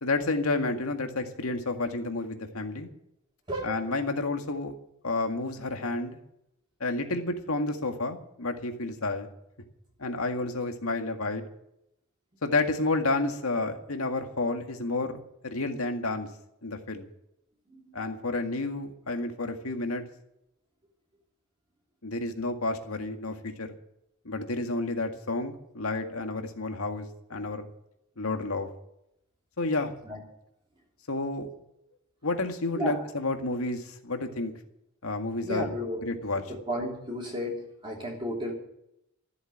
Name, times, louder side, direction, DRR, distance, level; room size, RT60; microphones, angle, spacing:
voice 1, 0.0-2.9 3.6-4.7 5.0-6.2 6.8-9.3 10.0-11.4 12.4-16.3 16.6-17.1 17.9-20.0 22.0-23.7 24.2-27.7 28.2-28.7 29.6-29.9 31.1-31.5 32.2-34.5 35.0-35.7 36.0-36.4, left 2 dB, 90° left, 5 dB, 2.0 m, -30 dB
voice 2, 17.7-18.3 30.0-30.2 32.8-33.0 35.4-36.0 36.7-38.5, equal, 25° right, -3 dB, 3.1 m, -33 dB
14.0 x 8.2 x 9.9 m, 0.80 s
head